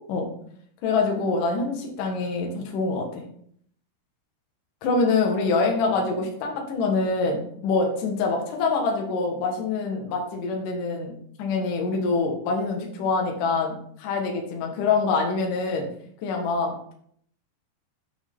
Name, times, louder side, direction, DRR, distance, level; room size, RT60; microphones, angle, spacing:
voice 1, 0.8-3.2 4.8-11.1 11.4-15.9 16.2-16.9, left 4 dB, 60° left, 1 dB, 2.4 m, -25 dB
8.8 x 6.1 x 3.6 m, 0.64 s
omnidirectional pair, 5.4 m